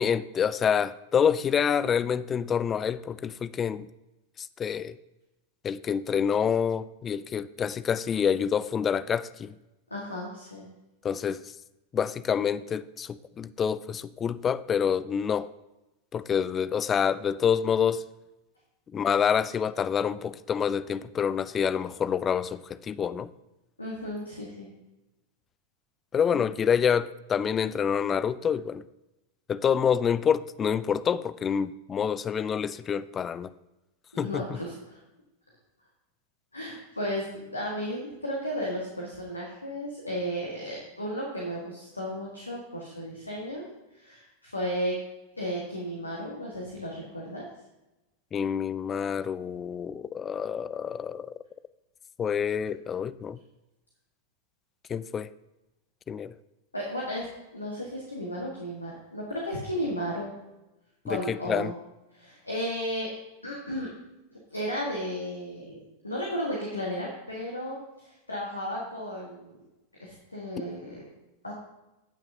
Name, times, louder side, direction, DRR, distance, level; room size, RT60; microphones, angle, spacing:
voice 1, 0.0-3.9 4.4-5.0 5.6-9.5 11.0-11.4 11.9-15.5 16.1-18.0 18.9-23.3 26.1-28.8 29.5-33.5 34.2-34.6 48.3-51.3 52.2-53.4 54.9-55.3 56.1-56.3 61.1-61.7, left 7 dB, 25° left, 16 dB, 0.3 m, -27 dB
voice 2, 9.9-10.7 23.8-24.7 26.3-26.4 34.2-35.0 36.5-43.7 43.9-45.0 45.4-47.5 56.7-57.3 57.5-60.3 61.1-61.7 62.1-63.1 63.4-63.9 64.5-69.6 70.0-71.0 71.4-71.5, equal, 80° left, -3 dB, 1.6 m, -34 dB
17.0 x 5.8 x 2.8 m, 0.99 s
figure-of-eight pair, 90°, 0 cm